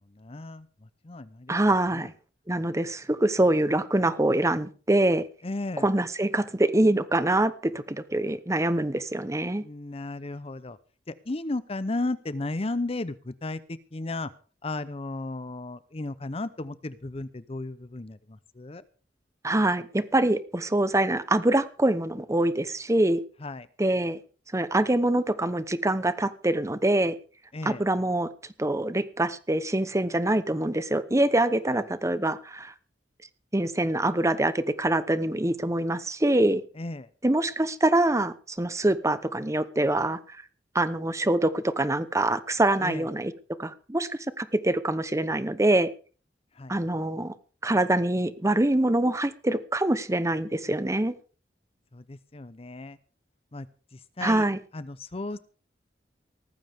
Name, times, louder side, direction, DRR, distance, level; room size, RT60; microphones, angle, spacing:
voice 1, 0.1-1.6 1.9-2.1 5.4-5.9 9.6-10.8 11.1-14.3 14.6-18.8 23.4-23.7 27.5-27.8 36.8-37.1 42.8-43.1 46.6-46.7 51.9-53.0 53.5-53.7 53.9-54.4 54.7-55.4, left 2 dB, 35° left, 15 dB, 0.7 m, -34 dB
voice 2, 1.5-2.1 2.5-5.2 5.8-9.6 19.4-23.2 23.8-24.2 24.5-27.2 27.6-28.3 28.6-32.7 33.5-36.6 37.2-40.2 40.7-43.3 43.6-45.9 46.7-47.3 47.6-51.1 54.2-54.6, right 1 dB, 15° right, 13 dB, 0.9 m, -24 dB
18.5 x 15.0 x 3.6 m, 0.38 s
head